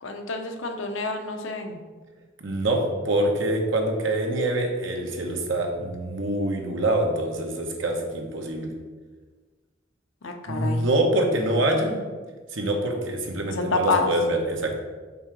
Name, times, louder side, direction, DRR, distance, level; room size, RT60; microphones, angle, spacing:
voice 1, 0.0-1.8 10.2-10.8 13.5-14.1, left 3 dB, 85° left, 4 dB, 0.8 m, -28 dB
voice 2, 2.4-8.7 10.5-12.0 12.5-14.8, right 1 dB, 80° right, 2 dB, 1.1 m, -25 dB
5.4 x 3.8 x 5.9 m, 1.4 s
head